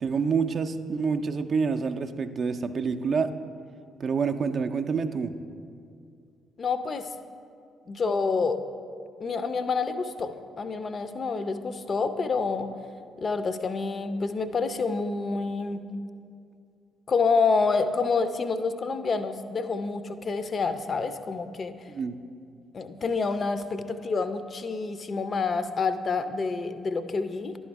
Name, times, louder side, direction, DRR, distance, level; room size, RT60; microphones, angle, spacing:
voice 1, 0.0-3.4 4.0-5.3 21.9-22.2, right 5 dB, 50° right, 7 dB, 0.4 m, -27 dB
voice 2, 6.6-7.1 7.9-8.6 9.2-12.7 13.2-15.8 17.1-21.7 22.7-27.6, left 4 dB, 45° left, 11 dB, 0.4 m, -28 dB
11.0 x 4.3 x 4.6 m, 2.4 s
figure-of-eight pair, 45°, 0 cm